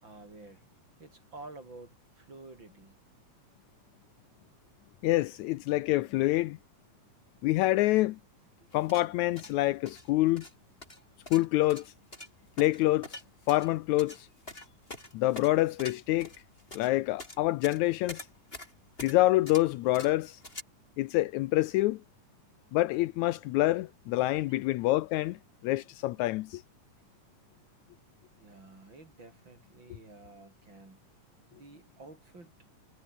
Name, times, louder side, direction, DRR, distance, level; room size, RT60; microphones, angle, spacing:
voice 1, 0.0-0.7 1.0-3.0 8.6-8.7 24.5-24.6 25.3-25.4 28.4-31.0 31.5-32.5, right 2 dB, 35° right, 6.7 m, -50 dB
voice 2, 5.0-6.6 7.4-8.2 8.7-10.5 11.3-11.9 12.6-13.2 13.5-14.3 15.1-16.3 16.7-18.3 19.0-20.4 21.0-22.0 22.7-25.4 25.6-26.6, left 17 dB, 80° left, 1.9 m, -26 dB
sound 1, 8.7-20.6, left 1 dB, 15° left, 6.5 m, -46 dB
omnidirectional pair, 3.5 m